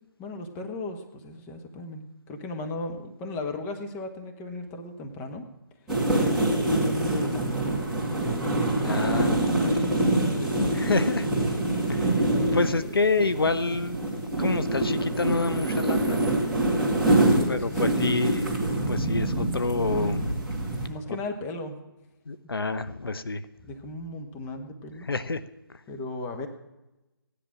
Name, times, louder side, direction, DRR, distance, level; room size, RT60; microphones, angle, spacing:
voice 1, 0.2-5.5 6.2-7.9 9.9-10.9 17.4-17.9 20.9-21.8 23.6-25.1 25.9-26.5, left 2 dB, 15° left, 4 dB, 1.1 m, -36 dB
sound 1, 5.9-20.9, right 1 dB, 5° right, 2.3 m, -25 dB
voice 2, 8.8-9.4 9.7-9.9 10.6-11.3 11.9-12.1 12.5-14.0 14.4-16.3 17.5-20.4 21.1-21.2 22.3-23.5 25.0-25.4, left 3 dB, 75° left, 12 dB, 0.9 m, -28 dB
16.5 x 10.5 x 6.0 m, 1.0 s
figure-of-eight pair, 155°, 12 cm